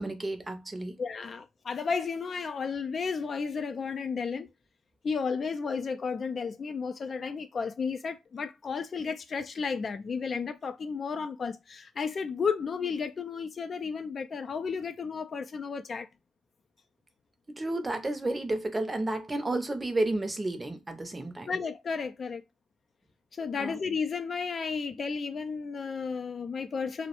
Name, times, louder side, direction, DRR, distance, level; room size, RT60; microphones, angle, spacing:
voice 1, 0.0-1.0 17.5-21.5 23.6-23.8, right 2 dB, 25° right, 0.6 m, -31 dB
voice 2, 1.0-4.5 5.0-16.1 21.5-22.4 23.4-27.1, left 5 dB, 45° left, 0.3 m, -33 dB
2.2 x 2.0 x 2.9 m
hypercardioid pair, 55°, 0 cm